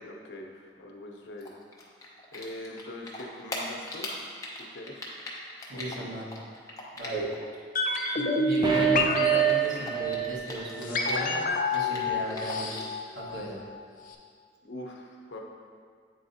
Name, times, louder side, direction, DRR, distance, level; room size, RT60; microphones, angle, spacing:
voice 1, 0.0-1.5 2.3-4.1 4.7-5.1 5.7-6.3 7.0-7.1 14.6-15.4, left 1 dB, 75° left, 1 dB, 0.8 m, -43 dB
Typing, 1.4-7.5 7.8-11.4 11.7-13.0, left 2 dB, 20° left, 0.8 m, -40 dB
voice 2, 5.7-6.3 6.9-7.2 8.4-11.4 11.7-12.8 13.1-13.6, right 1 dB, 85° right, -5 dB, 1.4 m, -35 dB
sound 1, 7.8-13.8 14.1-14.2, left 2 dB, 45° left, 0.5 m, -29 dB
sound 2, 8.6-10.5 10.8-10.9, right 9 dB, 25° right, 0.4 m, -26 dB
8.6 x 4.2 x 2.7 m, 2.1 s
head